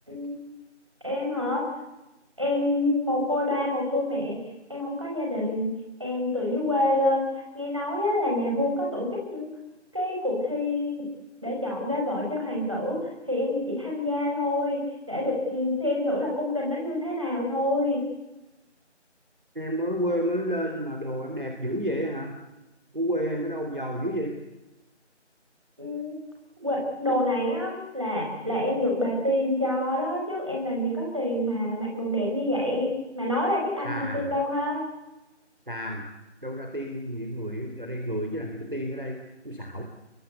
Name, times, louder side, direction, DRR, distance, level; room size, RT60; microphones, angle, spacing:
voice 1, 1.0-1.6 2.4-4.4 4.7-5.7 6.0-9.5 9.9-11.0 11.4-13.0 13.3-14.8 15.1-18.0 25.8-26.2 26.6-34.8, left 1 dB, 25° right, -2 dB, 6.3 m, -27 dB
voice 2, 19.6-22.4 22.9-24.4 33.8-34.3 35.7-36.1 36.4-39.8, equal, 45° right, 3 dB, 3.5 m, -30 dB
30.0 x 22.5 x 8.3 m, 0.98 s
figure-of-eight pair, 180°, 36 cm